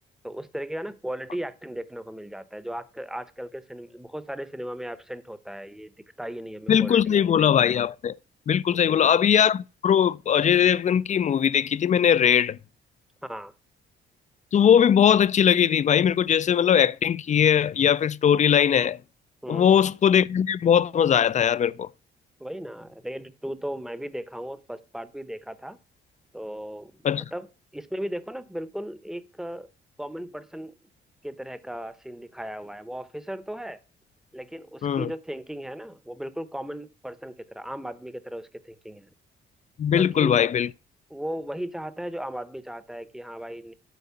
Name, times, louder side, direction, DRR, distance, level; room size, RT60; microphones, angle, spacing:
voice 1, 0.2-7.5 8.7-9.1 13.2-13.5 19.4-19.8 22.4-25.8 26.3-26.9 27.3-27.5 27.7-29.7 30.0-30.7 31.2-33.8 34.3-39.1 39.9-40.4 41.1-43.7, equal, ahead, 0.8 m, -36 dB
voice 2, 6.7-8.1 8.5-12.6 14.5-19.0 19.5-21.9 27.0-27.2 34.8-35.1 39.8-40.7, left 8 dB, 35° left, 0.4 m, -20 dB
8.3 x 5.2 x 5.6 m
cardioid pair, 90°, 20 cm